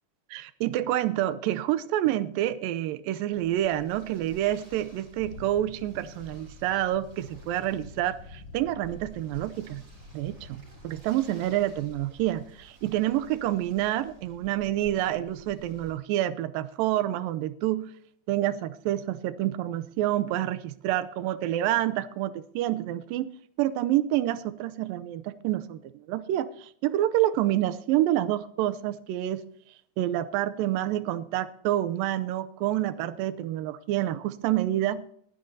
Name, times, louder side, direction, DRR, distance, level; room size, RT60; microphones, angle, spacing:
voice 1, 0.3-9.8 10.1-17.9 18.3-23.3 23.6-29.4 30.0-35.0, right 13 dB, 85° right, 13 dB, 2.4 m, -28 dB
sound 1, 3.3-15.9, right 1 dB, 35° right, 4.5 m, -52 dB
sound 2, 5.2-11.5, left 3 dB, 65° left, 1.5 m, -48 dB
20.5 x 10.5 x 2.7 m, 0.65 s
omnidirectional pair, 4.0 m